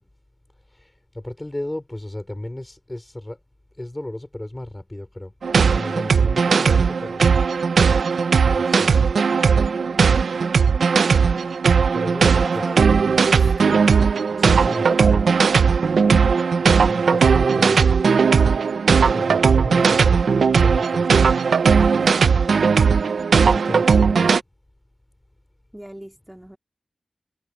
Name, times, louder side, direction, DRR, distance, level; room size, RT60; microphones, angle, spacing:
voice 1, 1.2-3.4 3.8-5.3 5.7-7.3 8.5-9.0 11.9-12.6 13.6-13.8 14.4-15.2 16.6-17.9 19.1-20.2 20.6-21.3 23.3-24.3, left 1 dB, 20° left, 4.9 m, -34 dB
sound 1, 5.4-24.4, right 5 dB, 90° right, 0.8 m, -17 dB
voice 2, 12.2-12.9 13.4-14.0 14.7-15.5 16.5-17.0 22.0-22.2 23.5-24.2 25.7-26.6, right 1 dB, 10° right, 2.3 m, -39 dB
cardioid pair, 45°, 0 cm